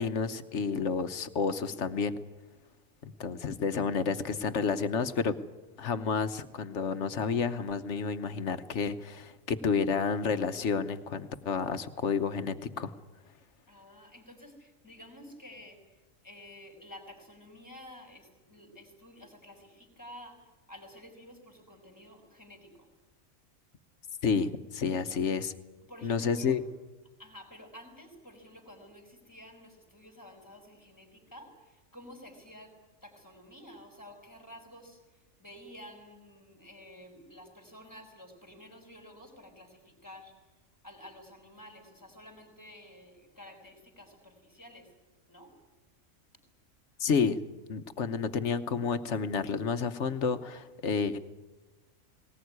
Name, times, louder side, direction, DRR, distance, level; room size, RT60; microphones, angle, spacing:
voice 1, 0.0-2.2 3.0-5.3 5.8-12.9 24.2-25.5 26.0-26.6 47.0-47.4 47.7-51.2, left 5 dB, 60° left, 11 dB, 1.3 m, -30 dB
voice 2, 13.7-22.9 25.0-25.1 25.9-26.6 27.2-32.7 33.0-40.3 40.8-44.9 45.3-45.5, left 1 dB, 15° left, 4 dB, 4.4 m, -51 dB
19.5 x 19.5 x 9.5 m, 1.1 s
omnidirectional pair, 1.4 m